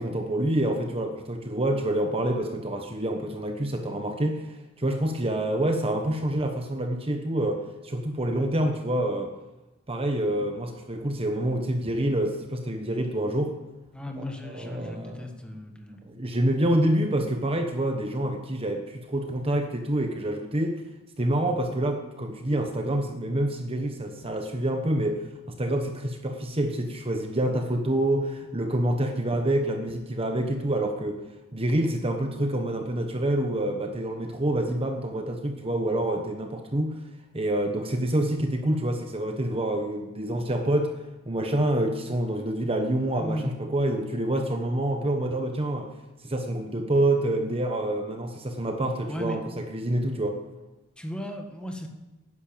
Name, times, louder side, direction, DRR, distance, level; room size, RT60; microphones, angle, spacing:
voice 1, 0.0-9.3 9.9-13.6 14.2-15.3 16.1-20.8 21.2-31.2 31.5-37.0 37.3-40.9 41.3-45.9 46.2-50.4, right 1 dB, 30° right, 4 dB, 1.2 m, -27 dB
voice 2, 13.9-16.2 43.2-43.6 49.1-49.4 51.0-51.9, equal, 5° left, 3 dB, 1.7 m, -35 dB
11.0 x 10.5 x 8.8 m, 1.0 s
head